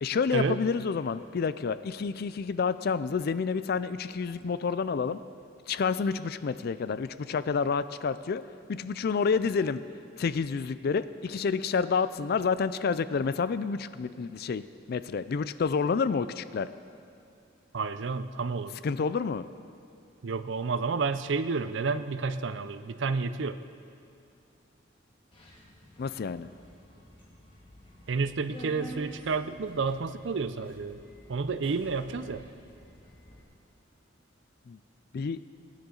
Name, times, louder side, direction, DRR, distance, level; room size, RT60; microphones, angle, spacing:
voice 1, 0.0-5.2 5.7-8.4 8.7-9.8 10.2-16.7 18.8-19.4 26.0-26.5 34.7-34.8 35.1-35.4, left 5 dB, 55° left, 14 dB, 0.4 m, -29 dB
voice 2, 17.7-18.8 20.2-23.6 28.1-31.0 31.3-32.5, right 4 dB, 70° right, 12 dB, 0.5 m, -30 dB
Subway metro underground, 25.3-33.4, equal, 30° left, 1.9 m, -49 dB
20.0 x 9.7 x 3.9 m, 2.5 s
head